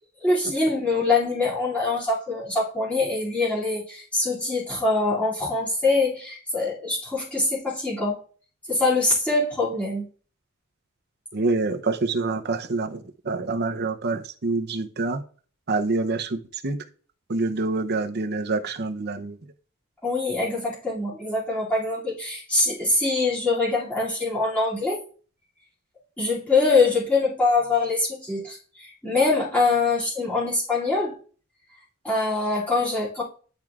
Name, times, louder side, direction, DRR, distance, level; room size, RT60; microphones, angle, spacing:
voice 1, 0.2-8.2 8.7-10.0 20.0-25.0 26.2-31.2 32.0-33.2, left 3 dB, 5° left, -10 dB, 2.5 m, -24 dB
voice 2, 11.3-15.2 15.7-16.8 17.3-19.4, right 3 dB, 50° right, 8 dB, 0.7 m, -26 dB
10.5 x 4.6 x 2.4 m, 0.42 s
head